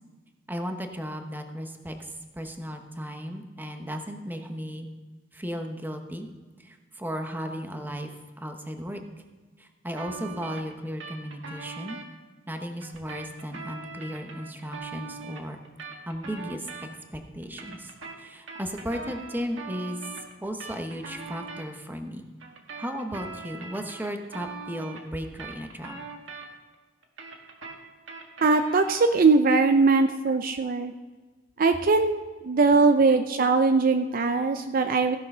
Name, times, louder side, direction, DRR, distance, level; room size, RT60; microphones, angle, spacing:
voice 1, 0.5-4.9 5.3-6.3 6.6-9.0 9.6-12.0 12.5-15.6 16.1-16.7 17.1-17.9 18.2-20.1 20.4-22.3 22.8-26.0, equal, 10° right, 5 dB, 0.9 m, -35 dB
sound 1, 10.0-12.1 12.8-17.1 17.4-21.7 22.4-26.7 27.0-29.2, right 4 dB, 80° right, 1.6 m, -41 dB
voice 2, 28.4-30.9 31.6-35.2, right 4 dB, 50° right, 7 dB, 0.5 m, -21 dB
16.0 x 6.4 x 5.5 m, 1.3 s
head